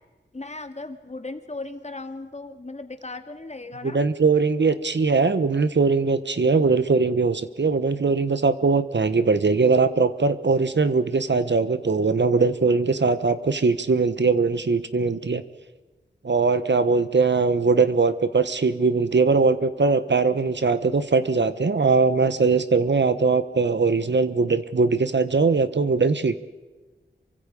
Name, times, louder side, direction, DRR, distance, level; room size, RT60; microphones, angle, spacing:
voice 1, 0.3-4.0, left 2 dB, 35° left, 7 dB, 2.2 m, -37 dB
voice 2, 3.8-15.4 16.2-26.4, right 4 dB, 65° right, 12 dB, 1.3 m, -21 dB
27.5 x 24.5 x 5.4 m, 1.2 s
wide cardioid pair, 85°, 20 cm